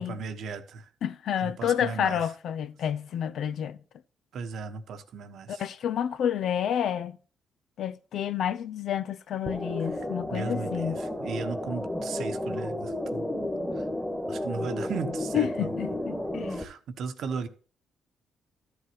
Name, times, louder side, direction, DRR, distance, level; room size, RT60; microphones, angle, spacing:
voice 1, 0.0-0.9 1.4-2.3 4.3-5.7 10.3-13.3 13.7-13.9 14.3-16.0 16.5-17.5, right 5 dB, 70° right, 1.2 m, -36 dB
voice 2, 1.0-3.8 5.5-7.2 7.8-11.0 15.3-16.6, left 9 dB, 70° left, 0.6 m, -29 dB
sound 1, 9.5-16.6, left 1 dB, 5° left, 1.5 m, -32 dB
13.5 x 8.1 x 3.0 m
cardioid pair, 90°, 0 cm